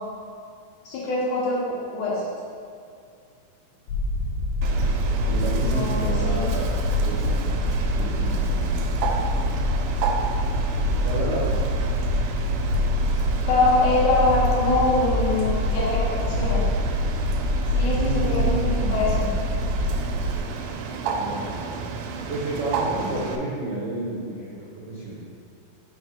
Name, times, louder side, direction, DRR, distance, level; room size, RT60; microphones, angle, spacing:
voice 1, 0.9-2.3 5.6-6.5 13.4-16.7 17.7-19.3, left 2 dB, 70° left, -6 dB, 2.1 m, -24 dB
sound 1, 3.9-20.4, equal, 90° left, 2.4 m, -25 dB
Bird, 4.6-23.4, right 4 dB, 90° right, 2.4 m, -32 dB
voice 2, 5.2-7.4 7.8-8.8 11.0-11.8 17.9-19.2 20.6-21.8 22.3-25.2, right 2 dB, 75° right, -8 dB, 1.3 m, -31 dB
5.2 x 3.9 x 4.9 m, 2.4 s
omnidirectional pair, 4.1 m